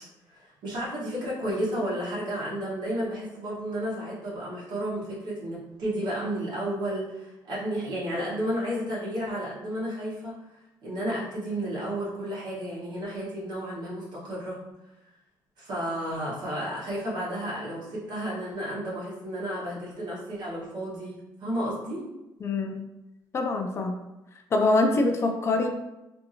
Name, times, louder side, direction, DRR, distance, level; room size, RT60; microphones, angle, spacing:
voice 1, 0.3-14.6 15.6-22.0, equal, 70° right, -7 dB, 1.0 m, -32 dB
voice 2, 22.4-22.8 23.3-23.9 24.5-25.7, left 2 dB, 35° left, 3 dB, 0.4 m, -24 dB
2.7 x 2.6 x 2.8 m, 0.96 s
cardioid pair, 115°, 8 cm